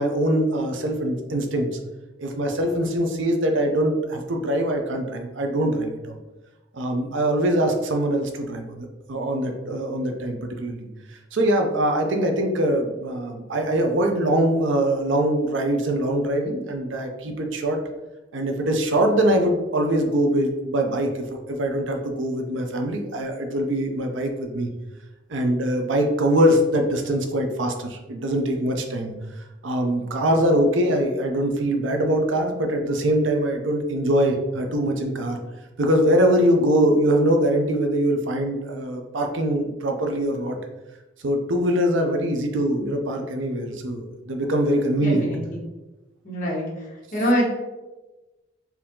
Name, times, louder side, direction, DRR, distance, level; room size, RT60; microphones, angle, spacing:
voice 1, 0.0-1.7 2.2-6.2 6.7-17.8 18.3-24.7 25.3-29.1 29.6-35.4 35.8-40.6 41.2-45.3, right 1 dB, 70° right, 4 dB, 0.6 m, -23 dB
voice 2, 45.0-45.4 46.2-46.6 47.1-47.5, equal, 45° left, -5 dB, 1.4 m, -23 dB
4.5 x 2.8 x 3.7 m, 1.1 s
head